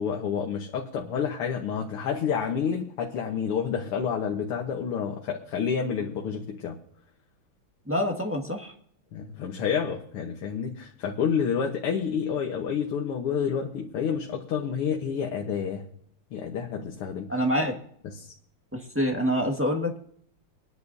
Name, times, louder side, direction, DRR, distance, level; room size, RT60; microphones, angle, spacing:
voice 1, 0.0-6.8 9.1-15.9 16.3-17.3 18.0-18.3, left 7 dB, 85° left, 1 dB, 2.2 m, -29 dB
voice 2, 7.9-8.7 17.3-17.8 18.7-20.0, equal, 5° right, 1 dB, 1.5 m, -26 dB
26.5 x 10.5 x 2.7 m, 0.65 s
omnidirectional pair, 2.4 m